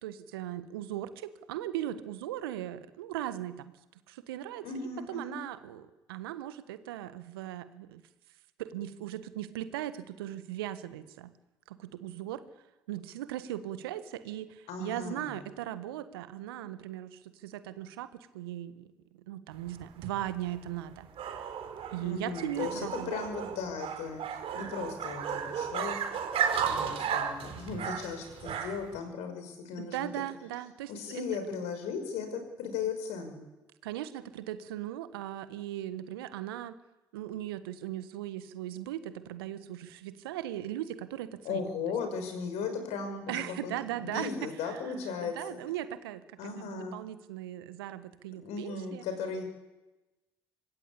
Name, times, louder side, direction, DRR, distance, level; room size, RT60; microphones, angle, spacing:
voice 1, 0.0-3.7 4.1-4.6 5.1-8.0 8.6-11.3 11.7-12.4 12.9-21.1 21.9-23.1 29.8-30.9 33.8-36.8 37.1-41.6 43.3-44.3 44.7-44.8 45.2-49.0, right 13 dB, 80° right, 12 dB, 1.5 m, -38 dB
voice 2, 4.6-5.4 14.7-15.3 22.0-24.2 24.5-26.0 26.6-30.1 30.9-33.4 41.4-45.4 46.4-47.0 48.4-49.4, left 5 dB, 65° left, 7 dB, 6.1 m, -36 dB
sound 1, 19.5-29.0, right 7 dB, 55° right, 4.0 m, -34 dB
25.5 x 20.5 x 8.6 m, 1.1 s
hypercardioid pair, 55°, 12 cm